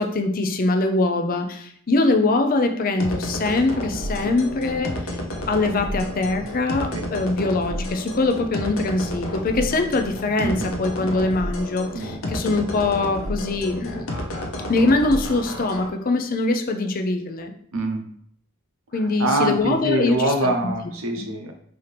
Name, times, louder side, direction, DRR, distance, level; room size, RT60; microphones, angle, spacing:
voice 1, 0.0-5.2 5.5-14.1 14.7-17.5 18.9-20.5 21.2-21.3, left 2 dB, 45° left, 5 dB, 0.5 m, -23 dB
sound 1, 3.0-15.9, left 1 dB, 90° left, 0.7 m, -31 dB
voice 2, 17.7-18.0 19.2-21.5, right 1 dB, 80° right, 4 dB, 0.7 m, -24 dB
4.0 x 2.8 x 3.3 m, 0.65 s
head